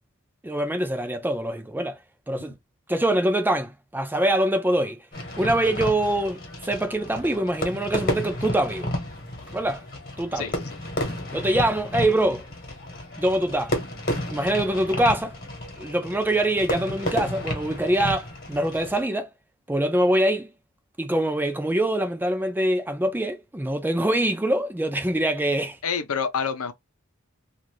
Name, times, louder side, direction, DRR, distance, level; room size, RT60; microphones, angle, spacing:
voice 1, 0.4-2.0 2.3-2.6 2.9-5.0 5.4-8.9 9.5-9.8 10.2-10.5 11.3-12.4 13.2-13.8 14.3-15.4 15.8-19.3 19.7-20.5 21.0-25.8, right 1 dB, 10° right, 0.5 m, -24 dB
Fireworks, 5.1-19.0, left 1 dB, 45° left, 1.2 m, -32 dB
voice 2, 25.8-26.7, left 6 dB, 80° left, 0.7 m, -27 dB
2.7 x 2.5 x 3.1 m
head